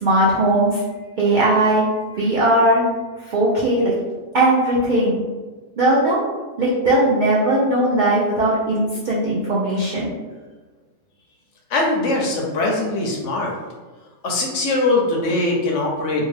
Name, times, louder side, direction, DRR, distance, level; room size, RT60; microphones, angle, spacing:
voice 1, 0.0-0.8 1.2-1.8 2.2-2.8 3.3-3.9 4.3-5.2 5.8-6.2 6.6-10.1, right 1 dB, 75° right, -6 dB, 0.4 m, -18 dB
voice 2, 11.7-13.5 14.2-16.3, left 2 dB, 70° left, -1 dB, 0.8 m, -21 dB
2.7 x 2.2 x 3.2 m, 1.3 s
omnidirectional pair, 1.5 m